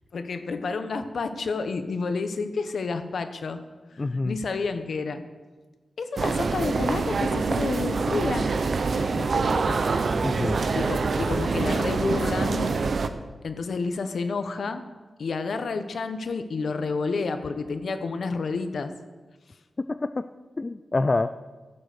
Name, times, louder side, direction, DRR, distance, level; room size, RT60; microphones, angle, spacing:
voice 1, 0.1-3.6 3.9-5.2 6.0-8.5 9.1-9.8 10.2-10.4 10.7-12.7 13.4-14.8 15.2-18.9, left 4 dB, 65° left, 9 dB, 1.0 m, -30 dB
voice 2, 4.0-4.4 10.2-10.6 19.8-20.3 20.6-21.3, left 3 dB, 30° left, 11 dB, 0.3 m, -26 dB
sound 1, 6.2-13.1, right 4 dB, 55° right, 0.7 m, -25 dB
14.5 x 7.9 x 6.6 m, 1.3 s
wide cardioid pair, 145°, 0 cm